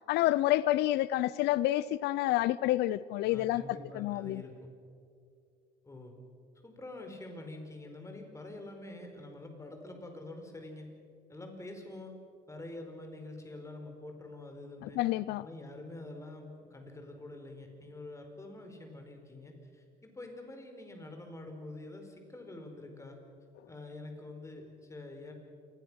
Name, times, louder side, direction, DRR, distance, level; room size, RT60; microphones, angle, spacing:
voice 1, 0.1-3.6 3.9-4.4 15.0-15.5, left 15 dB, 80° left, 0.5 m, -28 dB
voice 2, 3.3-4.7 5.8-6.1 6.6-10.9 11.3-12.1 12.5-15.0 15.4-23.2 23.7-25.3, left 2 dB, 15° left, 4.7 m, -46 dB
27.5 x 21.0 x 6.3 m
cardioid pair, 110°, 17 cm